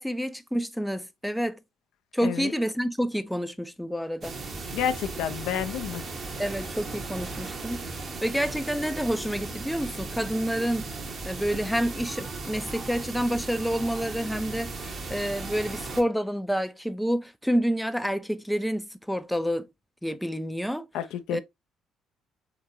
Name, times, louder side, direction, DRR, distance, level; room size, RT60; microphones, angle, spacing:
voice 1, 0.0-1.6 2.1-4.4 6.4-7.8 8.2-10.9 11.3-19.7 20.0-20.9 21.3-21.4, equal, 5° left, 0.4 m, -28 dB
voice 2, 2.2-2.5 4.7-6.1 20.9-21.4, left 9 dB, 70° left, 0.4 m, -30 dB
sound 1, 4.2-16.0, right 3 dB, 45° right, 0.8 m, -36 dB
3.5 x 2.9 x 2.6 m
hypercardioid pair, 55°, 0 cm